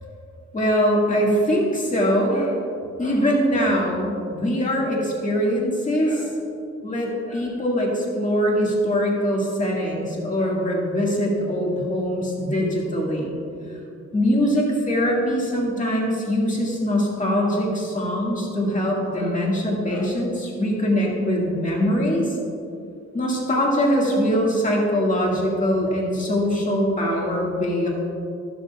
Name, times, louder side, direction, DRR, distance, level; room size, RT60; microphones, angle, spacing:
voice 1, 0.5-2.6 3.0-6.3 6.8-13.3 14.1-22.4 23.1-27.9, equal, 25° left, -3 dB, 2.1 m, -22 dB
13.5 x 12.0 x 2.4 m, 2.6 s
wide cardioid pair, 160°, 29 cm